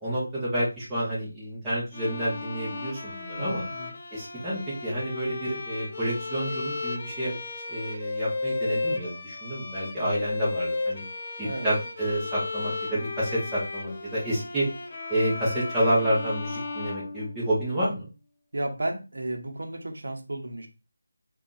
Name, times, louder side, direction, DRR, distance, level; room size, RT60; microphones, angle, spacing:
voice 1, 0.0-3.6 4.1-7.4 7.7-11.0 11.4-14.7 15.1-18.1, equal, 5° right, -10 dB, 0.8 m, -29 dB
Bowed string instrument, 1.9-17.8, left 3 dB, 35° left, 0.4 m, -34 dB
voice 2, 3.3-3.9 11.4-11.7 18.5-20.7, right 1 dB, 75° right, 4 dB, 0.8 m, -33 dB
2.6 x 2.4 x 3.8 m, 0.30 s
figure-of-eight pair, 175°, 0 cm